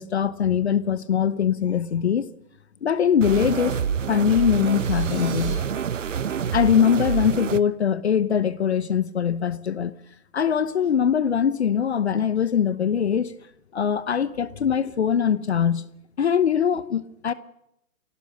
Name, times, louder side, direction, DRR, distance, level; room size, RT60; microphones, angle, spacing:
voice 1, 0.0-2.3 2.8-5.6 6.5-9.9 10.3-13.3 13.7-15.8 16.2-17.3, left 8 dB, 45° left, 0.9 m, -22 dB
sound 1, 3.2-7.6, right 7 dB, 60° right, 1.0 m, -27 dB
sound 2, 4.3-5.5, right 7 dB, 15° right, 3.7 m, -43 dB
24.0 x 17.5 x 6.6 m
hypercardioid pair, 155°, 44 cm